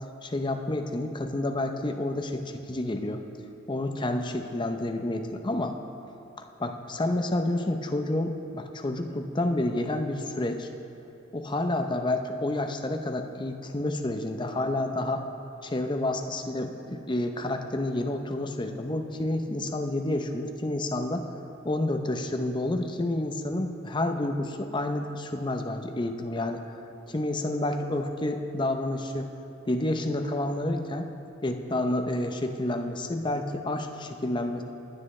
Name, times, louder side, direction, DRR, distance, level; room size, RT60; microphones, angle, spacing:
voice 1, 0.2-3.2 3.7-5.7 6.6-10.7 11.3-15.2 15.6-21.3 21.6-26.6 27.1-29.3 29.7-31.1 31.4-34.6, left 1 dB, 25° left, 5 dB, 0.7 m, -29 dB
20.0 x 9.9 x 3.2 m, 2.8 s
head